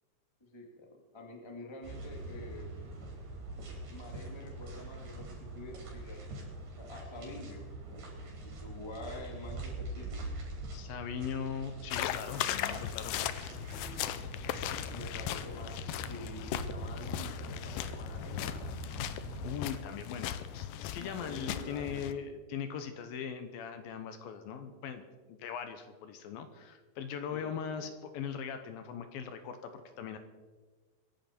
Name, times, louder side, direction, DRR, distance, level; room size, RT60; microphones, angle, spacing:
voice 1, 0.4-2.7 3.9-6.2 6.8-8.0 8.4-10.3 14.9-18.7 21.0-22.2 27.3-27.9, left 2 dB, 25° left, 1 dB, 0.6 m, -47 dB
sound 1, 1.8-19.5, right 2 dB, 70° right, 6.3 m, -44 dB
sound 2, 10.4-19.6, left 7 dB, 55° left, 2.9 m, -58 dB
voice 2, 10.7-13.2 19.4-25.0 25.3-30.2, left 7 dB, 70° left, 8 dB, 2.5 m, -40 dB
sound 3, 11.9-22.1, left 11 dB, 85° left, 1.9 m, -38 dB
23.5 x 11.0 x 4.4 m, 1.3 s
omnidirectional pair, 4.7 m